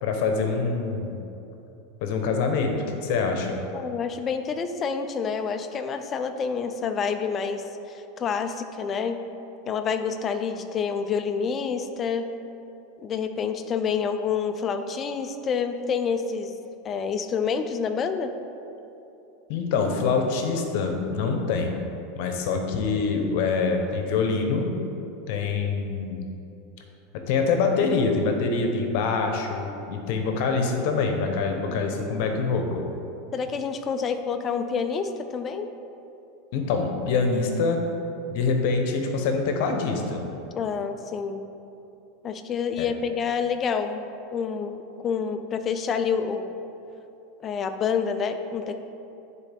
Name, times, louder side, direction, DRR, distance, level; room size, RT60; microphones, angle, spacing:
voice 1, 0.0-1.2 2.0-2.7 3.0-3.6 19.5-21.7 22.2-24.7 25.3-26.2 27.1-32.9 36.5-37.8 38.3-40.2 42.8-42.9, left 4 dB, 60° left, 4 dB, 0.8 m, -25 dB
voice 2, 3.7-9.2 9.7-12.3 13.0-16.5 16.8-18.3 31.7-31.8 33.3-35.7 40.5-41.4 42.2-44.0 44.3-46.5 47.4-48.8, left 6 dB, 25° left, 8 dB, 0.4 m, -28 dB
9.7 x 4.1 x 3.5 m, 2.9 s
supercardioid pair, 155°, 0 cm